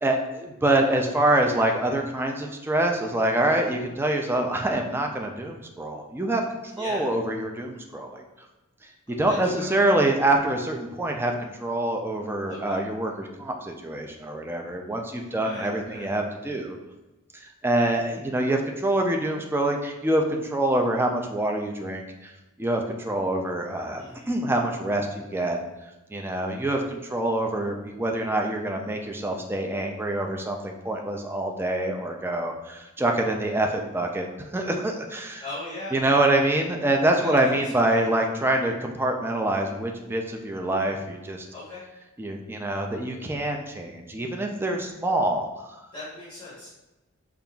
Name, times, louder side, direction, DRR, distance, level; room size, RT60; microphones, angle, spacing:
voice 1, 0.0-6.4 6.8-8.2 9.1-16.8 17.6-22.3 22.6-25.6 26.1-35.4 35.9-41.5 42.2-45.7, right 1 dB, 10° right, 2 dB, 0.3 m, -25 dB
voice 2, 6.8-7.1 9.3-9.6 9.9-10.4 12.5-12.8 15.2-16.2 24.0-24.3 35.4-36.2 37.2-38.1 41.5-41.8 45.9-46.7, left 2 dB, 20° left, -10 dB, 1.0 m, -39 dB
5.3 x 2.4 x 2.3 m, 1.0 s
head